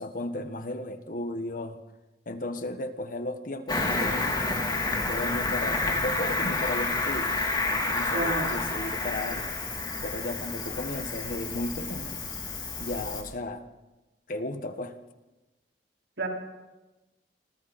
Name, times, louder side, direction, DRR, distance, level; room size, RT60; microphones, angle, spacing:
voice 1, 0.0-1.8 2.2-7.3 7.7-9.5 10.0-12.2 12.8-13.6 14.3-14.9, left 1 dB, 50° left, 8 dB, 1.5 m, -35 dB
Cricket, 3.7-13.2, left 3 dB, 25° left, 3.4 m, -29 dB
voice 2, 8.1-8.6 16.2-16.3, right 2 dB, 85° right, -1 dB, 5.0 m, -30 dB
29.0 x 25.5 x 4.3 m, 1.1 s
head